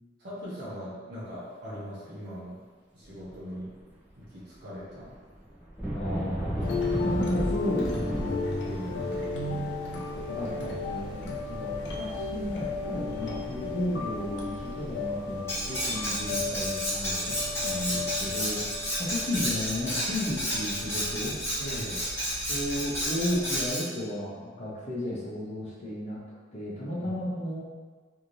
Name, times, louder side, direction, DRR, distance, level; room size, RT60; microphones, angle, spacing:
voice 1, 0.2-2.6 2.9-3.7 4.2-5.1 8.1-8.2 8.6-10.1 21.6-22.0 27.0-27.2, equal, 55° right, -10 dB, 0.9 m, -40 dB
sound 1, 3.1-4.1 4.4-13.9, right 1 dB, 5° right, 0.6 m, -37 dB
voice 2, 5.9-8.3 10.4-17.2 17.6-18.6 19.0-21.4 22.5-26.2 26.5-27.6, left 1 dB, 35° left, -6 dB, 0.7 m, -33 dB
sound 2, 6.6-23.7, left 3 dB, 70° left, 0.5 m, -35 dB
Cutlery silverware, 15.5-23.9, equal, 15° left, 1.4 m, -31 dB
3.2 x 2.7 x 2.6 m, 1.4 s
head